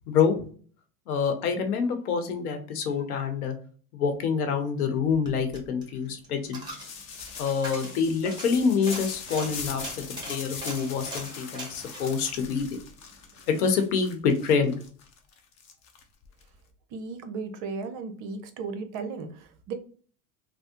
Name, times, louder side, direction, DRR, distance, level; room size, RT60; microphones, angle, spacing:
voice 1, 0.1-0.4 1.1-3.6 3.9-6.6 7.4-12.7 13.5-14.7, left 6 dB, 80° left, 6 dB, 0.9 m, -26 dB
Coin (dropping), 5.0-13.5 13.8-13.9, right 1 dB, 10° right, 1.2 m, -42 dB
sound 1, 6.5-16.4, left 6 dB, 35° left, 0.7 m, -41 dB
voice 2, 16.9-19.7, right 4 dB, 45° right, 8 dB, 0.7 m, -35 dB
3.4 x 2.0 x 2.8 m, 0.43 s
supercardioid pair, 110°, 44 cm